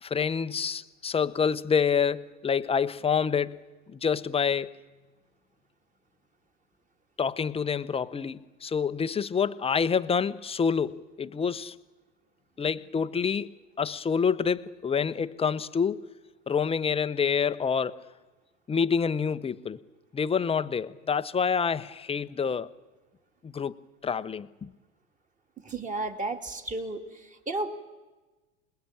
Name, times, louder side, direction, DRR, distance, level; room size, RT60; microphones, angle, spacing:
voice 1, 0.0-3.6 3.9-4.7 7.2-11.8 12.6-16.0 16.5-18.0 18.7-19.8 20.1-22.7 23.4-23.7 24.0-24.7, left 6 dB, 15° left, 13 dB, 0.8 m, -27 dB
voice 2, 25.6-27.0 27.5-27.7, right 2 dB, 20° right, 5 dB, 2.6 m, -32 dB
26.5 x 20.5 x 8.9 m, 1.2 s
hypercardioid pair, 100°, 38 cm